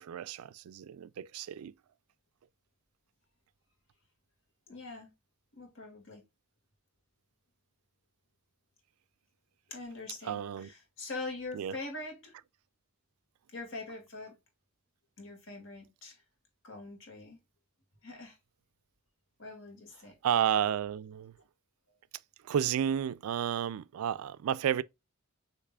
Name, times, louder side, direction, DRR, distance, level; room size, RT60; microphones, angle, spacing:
voice 1, 0.0-1.7 10.2-10.7 11.5-11.8 20.2-21.3 22.4-24.8, right 9 dB, 80° right, 0.3 m, -31 dB
voice 2, 4.7-5.1 5.5-6.2 9.7-12.4 13.5-14.4 15.2-16.2 16.6-17.4 18.0-18.4 19.4-20.2, left 3 dB, 60° left, 1.9 m, -43 dB
6.6 x 3.0 x 2.3 m
head